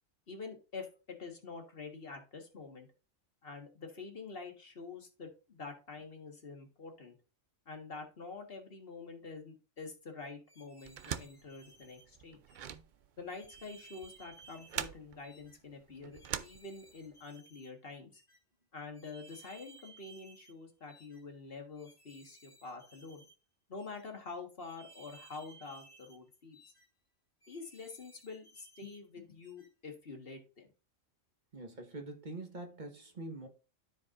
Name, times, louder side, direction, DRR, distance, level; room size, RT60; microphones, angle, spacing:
voice 1, 0.3-2.9 3.4-7.1 7.6-12.4 13.2-18.2 18.7-23.2 23.7-26.6 27.5-30.7, left 4 dB, 45° left, 1.7 m, -47 dB
sound 1, 10.5-12.1 12.5-12.8 13.3-14.9 15.2-15.6 16.1-17.7 18.1-18.4 18.9-20.6 20.9-21.2 21.8-23.4 23.8-24.1 24.6-26.2 26.5-26.9 27.4-29.0 29.4-29.7, right 3 dB, 20° left, 1.7 m, -59 dB
sound 2, 10.8-17.2, right 9 dB, 70° right, 0.4 m, -44 dB
voice 2, 31.5-33.5, right 2 dB, 35° right, 1.4 m, -44 dB
13.5 x 4.7 x 2.5 m
omnidirectional pair, 1.4 m